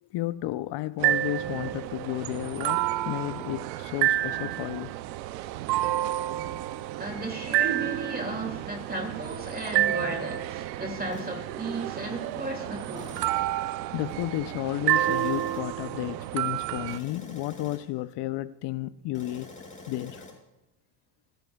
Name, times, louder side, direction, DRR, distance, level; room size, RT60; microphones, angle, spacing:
voice 1, 0.0-4.9 13.9-19.5 19.9-20.2, left 16 dB, 55° left, 0.7 m, -32 dB
sound 1, 1.0-17.0, right 14 dB, 90° right, 0.7 m, -29 dB
voice 2, 7.0-13.2, right 1 dB, 20° right, 2.3 m, -35 dB
sound 2, 11.1-11.3 13.0-13.4 15.0-15.8 16.9-18.0 19.1-20.4, left 2 dB, 15° left, 4.5 m, -47 dB
25.5 x 10.5 x 2.3 m
supercardioid pair, 85°, 50 cm